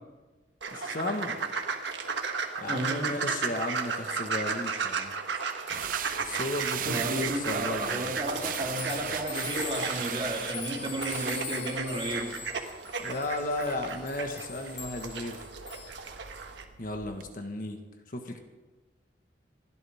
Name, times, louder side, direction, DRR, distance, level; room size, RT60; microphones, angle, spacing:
sound 1, 0.6-16.6, right 5 dB, 90° right, 1.5 m, -35 dB
voice 1, 0.7-1.4 2.6-5.1 6.2-8.1 12.9-15.4 16.8-17.8 18.1-18.4, left 1 dB, 50° left, 4 dB, 1.6 m, -34 dB
voice 2, 2.7-3.2 6.8-12.3, right 1 dB, 30° right, -2 dB, 3.5 m, -33 dB
sound 2, 5.7-17.3, right 9 dB, 50° right, 0.6 m, -39 dB
sound 3, 7.8-15.9, left 5 dB, 90° left, 3.0 m, -42 dB
27.5 x 12.0 x 3.6 m, 1.3 s
head